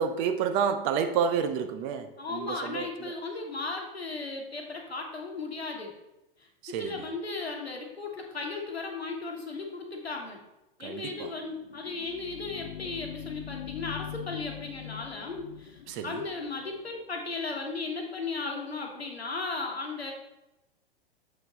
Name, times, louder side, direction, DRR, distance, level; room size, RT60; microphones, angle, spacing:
voice 1, 0.0-3.1 6.6-7.1 10.8-11.3 15.9-16.2, right 7 dB, 30° right, 8 dB, 0.5 m, -30 dB
voice 2, 2.2-5.9 6.4-6.5 6.8-10.4 10.8-20.1, left 3 dB, 90° left, 2 dB, 1.3 m, -36 dB
sound 1, 11.4-16.9, left 11 dB, 65° left, 0.6 m, -43 dB
6.8 x 4.2 x 4.0 m, 0.97 s
figure-of-eight pair, 105°, 31 cm